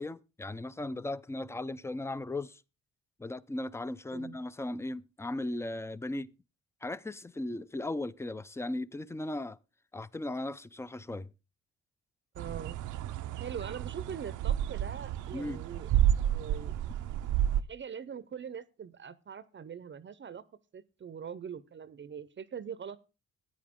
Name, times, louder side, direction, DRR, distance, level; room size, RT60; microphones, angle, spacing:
voice 1, 0.0-2.6 3.2-6.3 6.8-9.6 9.9-11.3 15.3-15.6, left 2 dB, 10° left, 0.5 m, -37 dB
voice 2, 12.3-12.8 13.4-15.9 16.2-16.8 17.7-20.4 20.7-23.0, right 7 dB, 40° right, 0.7 m, -42 dB
sound 1, 12.4-17.6, right 11 dB, 75° right, 0.6 m, -30 dB
13.5 x 9.3 x 3.6 m
cardioid pair, 90°, 30 cm